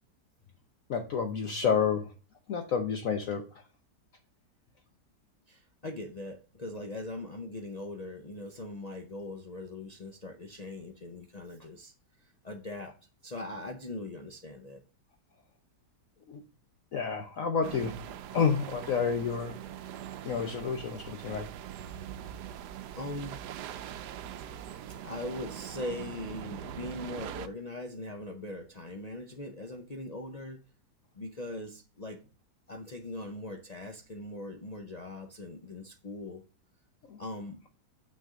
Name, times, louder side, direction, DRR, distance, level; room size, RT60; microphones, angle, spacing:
voice 1, 0.9-2.0 2.5-3.4 16.3-16.4 16.9-18.0 18.3-19.6 20.2-21.5 37.1-37.2, left 6 dB, 60° left, 1.1 m, -29 dB
voice 2, 5.5-13.0 13.2-14.8 20.1-20.5 22.9-23.4 24.9-30.6 31.1-32.2 32.7-36.4 37.2-37.6, left 2 dB, 75° left, 0.3 m, -41 dB
sound 1, 17.6-27.5, right 10 dB, 75° right, 1.1 m, -42 dB
6.9 x 6.2 x 3.7 m
omnidirectional pair, 1.8 m